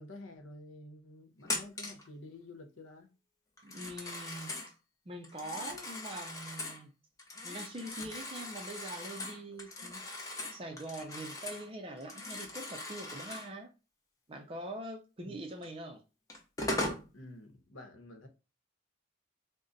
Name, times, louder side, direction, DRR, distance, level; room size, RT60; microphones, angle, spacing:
voice 1, 0.0-3.1 15.2-15.4 17.1-18.3, left 1 dB, 80° left, 0.9 m, -50 dB
Telephone, 1.4-2.1 3.6-4.7 5.2-6.8 7.2-11.7 12.0-13.5 15.6-15.7 16.3-17.1, left 2 dB, 15° left, 0.7 m, -40 dB
voice 2, 3.6-4.5 5.1-6.9 7.4-10.1 10.5-13.7 14.3-16.0, right 1 dB, 25° right, 0.4 m, -43 dB
3.8 x 2.1 x 3.9 m
head